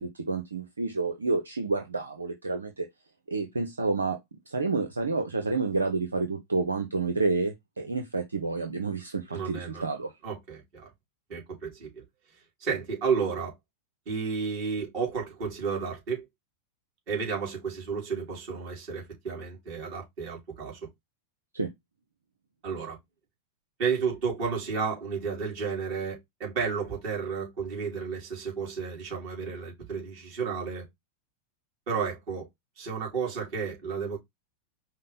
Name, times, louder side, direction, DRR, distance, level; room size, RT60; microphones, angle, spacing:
voice 1, 0.0-2.9 3.3-4.2 4.5-10.1 21.5-21.7, right 3 dB, 75° right, 0.5 m, -29 dB
voice 2, 9.3-9.8 10.2-10.9 11.3-12.0 12.6-13.5 14.1-16.2 17.1-20.8 22.6-23.0 23.8-30.8 31.9-32.5 32.8-34.2, right 5 dB, 45° right, 3.2 m, -32 dB
5.3 x 2.0 x 3.9 m
figure-of-eight pair, 90°, 0 cm